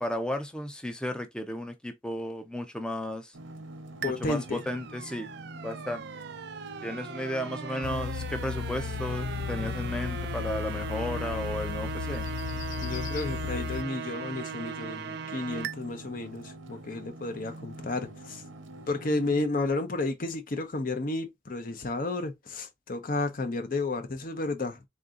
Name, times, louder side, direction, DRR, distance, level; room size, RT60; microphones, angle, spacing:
voice 1, 0.0-3.3 4.0-5.3 5.6-6.1 6.8-12.3, left 1 dB, 5° left, 0.5 m, -34 dB
sound 1, 3.3-19.5, right 1 dB, 90° right, 0.8 m, -46 dB
voice 2, 4.0-4.6 12.8-18.4 18.9-24.8, left 2 dB, 45° left, 0.7 m, -32 dB
sound 2, 4.0-15.7, right 7 dB, 55° right, 0.4 m, -39 dB
sound 3, 7.8-13.8, left 8 dB, 70° left, 0.3 m, -35 dB
3.7 x 2.7 x 3.7 m
head